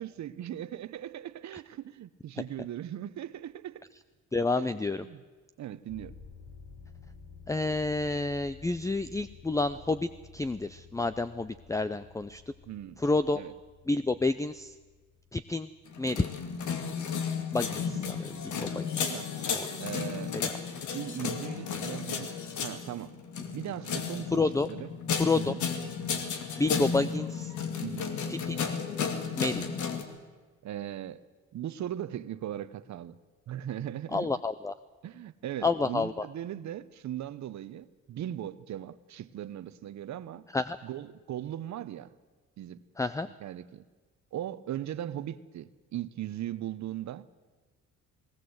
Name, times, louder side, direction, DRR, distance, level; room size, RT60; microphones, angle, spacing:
voice 1, 0.0-3.8 4.6-5.2 5.6-6.2 12.7-13.0 13.3-13.5 19.0-19.5 19.8-20.4 20.9-22.3 22.6-23.2 23.5-24.3 24.7-24.9 25.3-25.6 27.8-28.1 30.6-31.2 31.5-33.2 33.5-34.3 35.0-40.5 40.8-42.1 42.6-42.8 43.4-43.8 44.3-47.3, right 11 dB, 65° right, 1.0 m, -38 dB
voice 2, 4.3-5.0 7.5-12.4 13.0-13.4 13.9-14.8 15.3-15.7 16.0-16.3 17.5-19.2 19.5-19.7 20.3-20.4 24.3-24.7 25.2-25.5 26.6-27.5 28.3-28.6 29.4-29.7 34.1-34.7 35.6-36.3 40.5-40.8 43.0-43.3, left 3 dB, 10° left, 0.6 m, -29 dB
sound 1, 5.9-16.7, left 5 dB, 40° left, 5.7 m, -52 dB
sound 2, 15.9-30.0, left 6 dB, 75° left, 2.4 m, -33 dB
19.5 x 19.0 x 8.0 m
cardioid pair, 90°, 30 cm